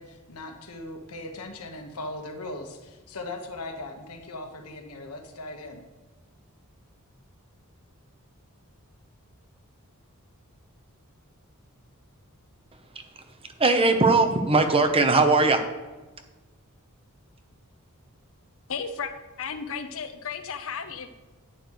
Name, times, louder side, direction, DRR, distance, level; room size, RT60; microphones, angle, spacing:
voice 1, 0.0-5.8, left 2 dB, 85° left, 4 dB, 1.5 m, -39 dB
voice 2, 13.6-15.6, right 3 dB, 25° right, 7 dB, 0.9 m, -19 dB
voice 3, 18.7-19.1 19.4-21.1, left 6 dB, 70° left, 9 dB, 0.9 m, -34 dB
11.0 x 9.3 x 3.2 m, 1.2 s
head